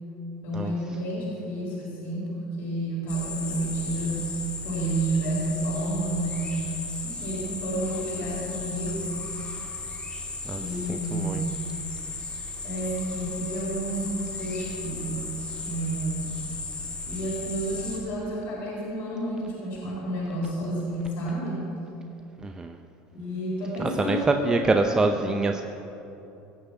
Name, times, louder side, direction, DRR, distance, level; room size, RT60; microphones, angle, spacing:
voice 1, 0.4-4.3 4.6-6.5 7.0-9.2 10.5-11.6 12.6-15.3 15.6-16.3 17.1-21.7 23.1-25.4, right 1 dB, 65° left, -7 dB, 3.8 m, -30 dB
sound 1, 3.1-18.0, left 3 dB, 25° left, 2.8 m, -36 dB
voice 2, 10.9-11.4 22.4-22.8 23.8-25.6, right 3 dB, 20° right, 5 dB, 0.6 m, -25 dB
17.0 x 6.7 x 8.1 m, 3.0 s
supercardioid pair, 110°, 4 cm